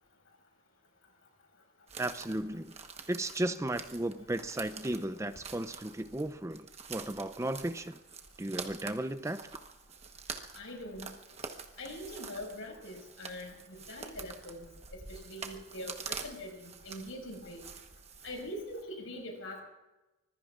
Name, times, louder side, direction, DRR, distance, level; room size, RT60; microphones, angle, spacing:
sound 1, 1.9-18.8, right 5 dB, 30° right, 1.2 m, -47 dB
voice 1, 2.0-2.7 3.1-8.0 8.4-9.4, right 1 dB, 15° right, 12 dB, 0.5 m, -35 dB
voice 2, 10.5-11.1 11.8-13.5 13.9-14.6 15.1-17.6 18.2-19.6, left 1 dB, 90° left, 1 dB, 5.8 m, -43 dB
25.0 x 21.0 x 2.5 m, 1.0 s
head